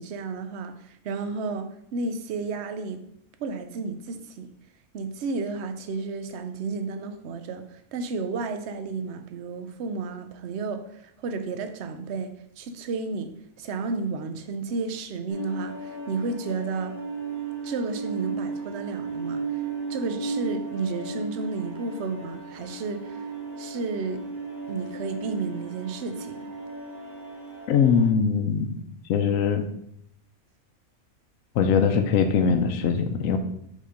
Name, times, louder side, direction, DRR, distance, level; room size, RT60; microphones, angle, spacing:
voice 1, 0.0-3.0 3.4-4.5 4.9-13.3 13.6-17.0 17.6-19.6 19.9-23.3 23.6-24.2 24.7-26.4, right 4 dB, 60° right, 8 dB, 0.8 m, -32 dB
sound 1, 15.3-28.1, right 3 dB, 85° right, 2.4 m, -35 dB
voice 2, 27.7-29.6 31.6-33.4, left 6 dB, 70° left, 6 dB, 0.9 m, -22 dB
5.3 x 3.9 x 5.0 m, 0.74 s
omnidirectional pair, 1.5 m